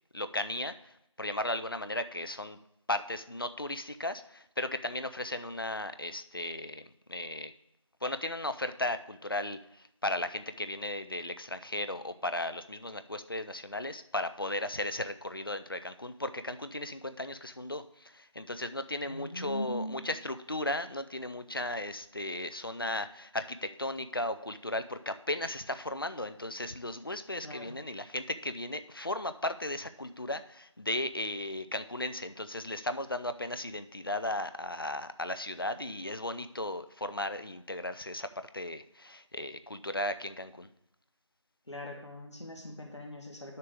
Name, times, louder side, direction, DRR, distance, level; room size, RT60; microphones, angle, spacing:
voice 1, 0.1-0.9 1.2-2.6 2.9-7.5 8.0-9.6 10.0-40.7, left 1 dB, 45° left, 11 dB, 0.4 m, -36 dB
voice 2, 19.1-20.0 27.4-27.8 41.7-43.6, left 1 dB, 65° left, 0 dB, 1.5 m, -40 dB
9.4 x 6.6 x 3.5 m, 0.82 s
figure-of-eight pair, 175°, 16 cm